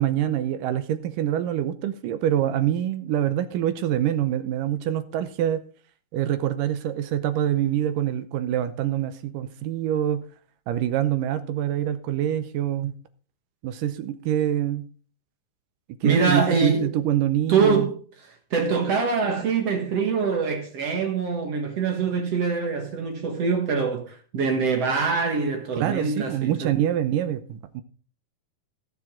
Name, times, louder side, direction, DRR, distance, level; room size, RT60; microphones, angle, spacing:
voice 1, 0.0-5.6 6.1-10.2 10.7-13.0 13.6-14.9 16.0-17.9 25.8-27.8, right 11 dB, 75° right, 2.1 m, -25 dB
voice 2, 16.0-16.9 17.5-18.0 18.5-26.7, right 5 dB, 55° right, 2.0 m, -24 dB
17.5 x 6.9 x 3.7 m
omnidirectional pair, 4.5 m